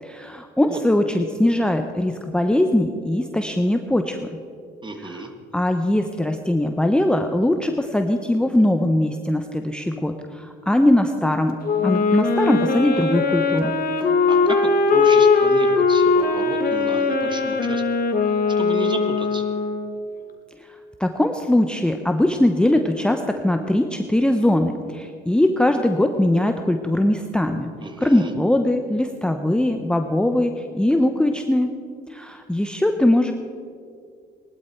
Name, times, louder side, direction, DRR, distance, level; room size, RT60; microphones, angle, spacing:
voice 1, 0.0-4.2 5.5-11.6 11.8-13.7 21.0-27.7 28.0-31.7 32.1-33.3, left 1 dB, 5° left, 5 dB, 0.8 m, -21 dB
voice 2, 4.8-5.3 14.3-17.8 18.6-19.5 27.8-28.3, right 2 dB, 25° right, 6 dB, 1.7 m, -32 dB
Wind instrument woodwind instrument, 11.6-20.0, left 4 dB, 45° left, 1.4 m, -20 dB
18.0 x 11.5 x 4.5 m, 2.3 s
supercardioid pair, 80°, 20 cm